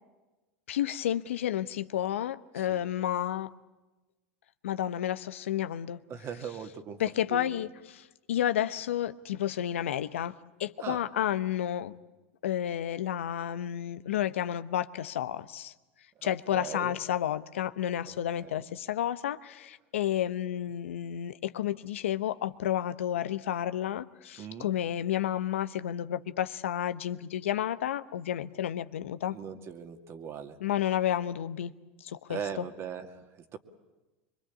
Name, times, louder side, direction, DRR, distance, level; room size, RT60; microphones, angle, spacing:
voice 1, 0.7-3.5 4.6-6.0 7.0-7.7 8.3-10.3 10.6-11.9 12.4-15.7 16.2-29.4 30.6-31.7 32.0-32.4, left 11 dB, 85° left, 13 dB, 0.9 m, -31 dB
voice 2, 2.6-2.9 6.1-7.0 7.3-7.7 10.8-11.0 16.2-17.0 18.1-18.7 24.4-24.7 29.3-30.6 32.3-33.6, right 7 dB, 40° right, 7 dB, 2.3 m, -40 dB
24.5 x 23.5 x 8.5 m, 1.1 s
hypercardioid pair, 100°, 7 cm